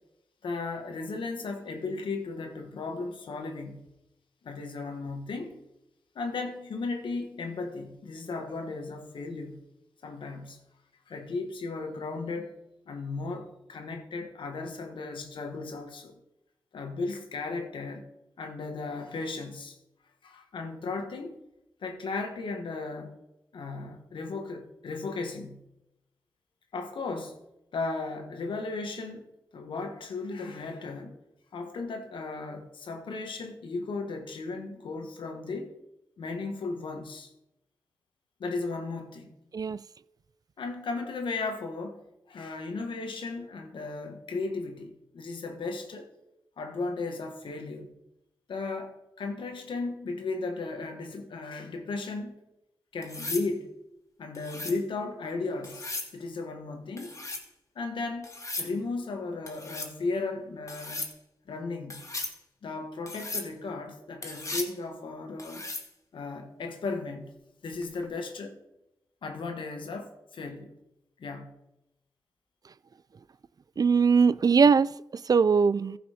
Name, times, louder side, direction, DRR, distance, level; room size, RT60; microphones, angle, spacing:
voice 1, 0.4-3.9 4.4-5.6 6.1-9.6 10.0-10.6 11.1-12.6 12.9-16.1 16.7-18.1 18.4-19.7 20.2-21.4 21.8-23.2 23.5-25.6 26.7-27.4 27.7-29.3 29.5-31.2 31.5-35.7 36.2-37.3 38.4-39.3 40.6-42.0 42.3-46.1 46.6-47.9 48.5-52.3 52.9-53.7 54.2-57.2 57.7-61.1 61.5-62.0 62.6-65.6 66.1-67.4 67.6-68.6 69.2-70.7 71.2-71.6, left 3 dB, 85° left, 1.3 m, -35 dB
sound 1, 53.0-53.5 54.3-54.8 55.6-56.1 57.0-57.5 58.2-58.7 59.5-59.9 60.7-61.1 61.9-62.4 63.1-63.5 64.2-64.7 65.4-65.9 67.8-68.1, left 2 dB, 40° left, 1.7 m, -37 dB
voice 2, 73.8-74.9 75.3-76.0, right 5 dB, 50° right, 0.3 m, -21 dB
14.5 x 5.6 x 5.0 m
cardioid pair, 50°, 8 cm